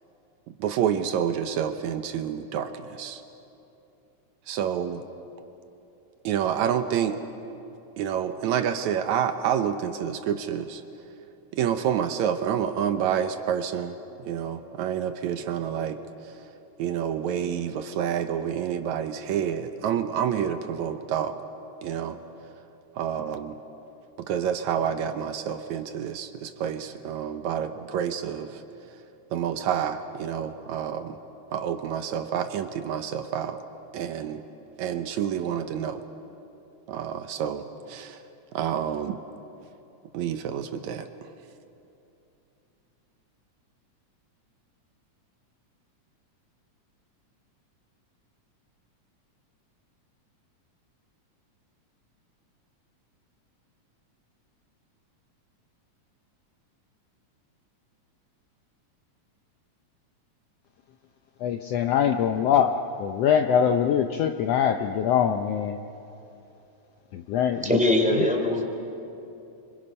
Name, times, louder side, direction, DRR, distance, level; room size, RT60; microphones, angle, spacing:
voice 1, 0.6-3.2 4.5-5.0 6.2-7.2 8.0-10.8 11.5-14.0 14.3-16.0 16.8-21.4 21.8-22.2 23.0-23.6 24.3-28.6 29.3-31.2 31.5-33.6 33.9-34.4 34.8-36.0 36.9-38.2 38.5-39.2 40.1-41.1, right 8 dB, 75° right, 8 dB, 2.1 m, -28 dB
voice 2, 61.4-65.8 67.1-67.6 68.2-68.3, left 8 dB, 75° left, 6 dB, 1.6 m, -23 dB
voice 3, 67.6-68.7, left 1 dB, ahead, 1 dB, 2.9 m, -22 dB
30.0 x 25.5 x 5.5 m, 2.8 s
omnidirectional pair, 3.5 m